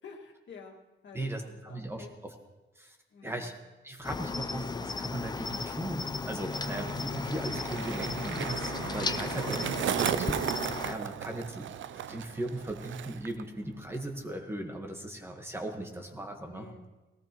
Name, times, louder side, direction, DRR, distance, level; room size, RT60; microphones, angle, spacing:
voice 1, 0.0-0.8 1.0-2.1 3.1-3.6 9.4-9.8 16.5-16.9, left 4 dB, 80° left, 0 dB, 2.0 m, -49 dB
voice 2, 1.1-2.3 2.8-3.0 3.2-3.5 3.8-9.7 10.1-10.4 10.8-11.7 12.1-16.7, right 1 dB, 10° right, 2 dB, 1.3 m, -38 dB
Cricket, 4.0-11.0, left 4 dB, 20° left, 0.5 m, -35 dB
Skateboard, 5.9-13.4 13.7-14.2, right 9 dB, 85° right, 0.4 m, -36 dB
19.5 x 17.5 x 3.0 m, 1.2 s
wide cardioid pair, 175°, 19 cm